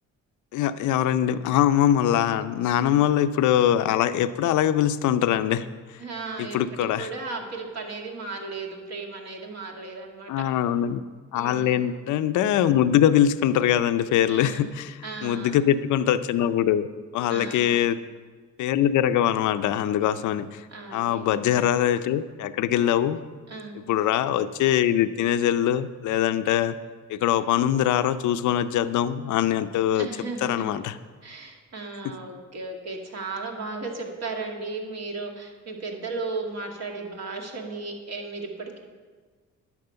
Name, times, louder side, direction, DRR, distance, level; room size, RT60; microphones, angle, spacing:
voice 1, 0.5-5.7 6.4-7.1 10.3-11.0 11.3-16.9 17.1-18.0 18.6-20.7 20.9-23.2 23.7-26.8 27.1-30.1 30.4-31.0 32.0-32.1, left 10 dB, 75° left, 11 dB, 0.6 m, -23 dB
voice 2, 6.0-10.3 11.3-11.8 14.3-14.7 15.0-15.6 17.3-17.8 20.7-21.3 23.5-23.8 29.9-30.7 31.2-38.8, right 3 dB, 60° right, 1 dB, 2.2 m, -35 dB
10.5 x 6.0 x 7.9 m, 1.5 s
cardioid pair, 90°, 30 cm